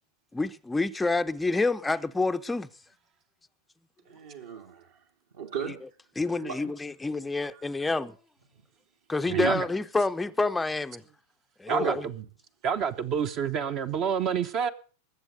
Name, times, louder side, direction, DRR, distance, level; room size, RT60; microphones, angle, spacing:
voice 1, 0.3-2.7 6.2-8.2 9.1-11.0 11.6-12.0, left 3 dB, 10° left, 0.6 m, -28 dB
voice 2, 4.1-5.0 5.3-5.8 6.4-6.6 7.5-7.6 9.3-9.6 11.7-12.0, right 7 dB, 60° right, 2.1 m, -34 dB
voice 3, 9.3-9.7 11.7-12.1 12.6-14.7, right 7 dB, 35° right, 0.9 m, -28 dB
20.5 x 7.8 x 6.5 m
figure-of-eight pair, 90°, 0 cm